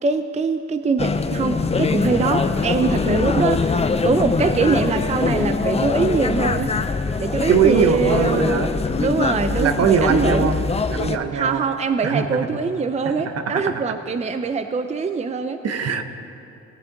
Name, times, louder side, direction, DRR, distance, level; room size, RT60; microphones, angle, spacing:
voice 1, 0.0-6.7 7.2-10.5 11.3-15.6, right 4 dB, 25° right, 9 dB, 0.5 m, -23 dB
sound 1, 1.0-11.2, left 4 dB, 20° left, 0.5 m, -23 dB
voice 2, 7.5-8.7 9.6-10.6 10.9-11.6 12.0-12.5 13.0-13.8 15.6-16.0, right 6 dB, 55° right, 8 dB, 0.9 m, -21 dB
19.5 x 8.7 x 3.9 m, 2.9 s
cardioid pair, 90°, 30 cm